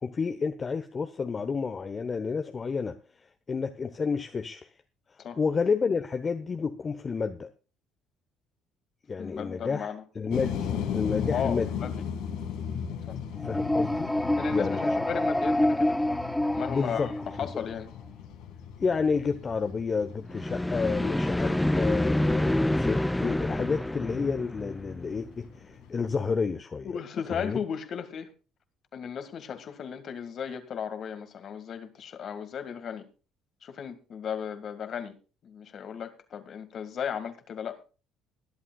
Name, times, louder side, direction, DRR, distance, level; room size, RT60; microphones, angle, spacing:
voice 1, 0.0-4.7 5.1-7.5 9.1-11.7 13.4-14.1 14.5-14.9 16.7-17.1 17.5-17.7 18.8-27.0 27.3-27.6, left 5 dB, 35° left, 8 dB, 1.0 m, -30 dB
voice 2, 9.2-10.0 11.3-12.0 13.1-13.2 14.4-16.0 16.6-17.1 17.4-17.9 26.8-28.3 28.9-33.1 33.6-35.1 35.4-37.8, left 7 dB, 50° left, 8 dB, 1.9 m, -35 dB
sound 1, 10.3-26.3, left 8 dB, 70° left, 2.1 m, -37 dB
sound 2, 13.4-17.7 20.3-25.3, left 1 dB, 10° left, 0.5 m, -27 dB
21.5 x 11.0 x 2.4 m, 0.35 s
hypercardioid pair, 55°, 0 cm